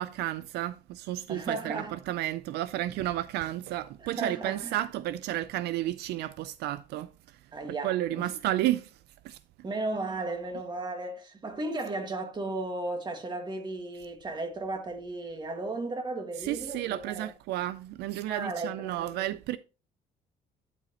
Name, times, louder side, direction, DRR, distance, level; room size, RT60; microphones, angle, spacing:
voice 1, 0.0-7.4 7.8-9.0 9.2-9.4 16.4-19.6, right 14 dB, 80° right, 0.4 m, -32 dB
voice 2, 1.3-2.0 4.0-4.8 7.5-8.3 9.6-17.3 18.3-19.2, right 2 dB, 25° right, 1.9 m, -35 dB
11.5 x 5.0 x 2.9 m
cardioid pair, 110°, 17 cm